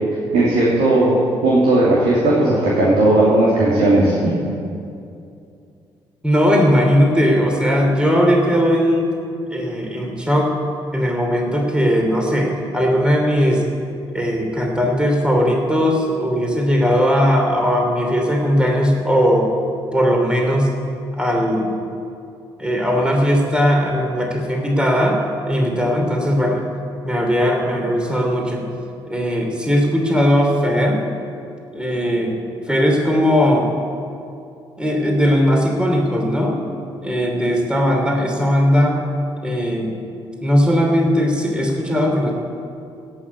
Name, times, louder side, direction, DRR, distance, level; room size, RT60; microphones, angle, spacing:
voice 1, 0.3-4.1, right 2 dB, 65° right, -6 dB, 2.7 m, -16 dB
voice 2, 6.2-9.1 9.5-10.5 10.9-13.6 14.1-19.5 19.9-20.7 21.1-21.7 22.6-26.6 27.0-28.7 29.1-31.0 31.7-32.4 32.7-33.7 34.8-36.6 37.0-39.0 39.4-39.9 40.4-42.3, equal, 10° right, 1 dB, 2.9 m, -18 dB
17.0 x 6.5 x 8.5 m, 2.5 s
hypercardioid pair, 45°, 12 cm